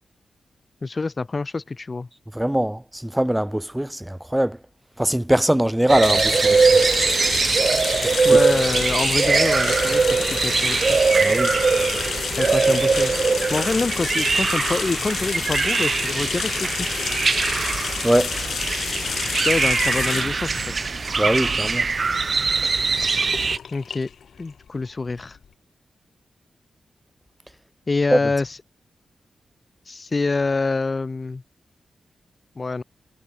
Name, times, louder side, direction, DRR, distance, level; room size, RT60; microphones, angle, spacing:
voice 1, 0.8-2.1 8.2-11.1 12.4-13.1 13.5-16.9 19.4-20.5 23.7-24.1 24.4-25.4 27.9-28.6 29.9-31.4 32.6-32.8, left 3 dB, 30° left, 2.6 m, -26 dB
voice 2, 2.3-4.6 5.0-6.8 8.0-8.4 11.2-11.5 18.0-18.3 21.2-21.9 28.1-28.2, right 1 dB, 5° right, 2.3 m, -22 dB
sound 1, 5.9-23.6, right 4 dB, 40° right, 0.6 m, -21 dB
sound 2, 6.0-25.5, left 7 dB, 75° left, 5.0 m, -30 dB
wide cardioid pair, 145°, 0 cm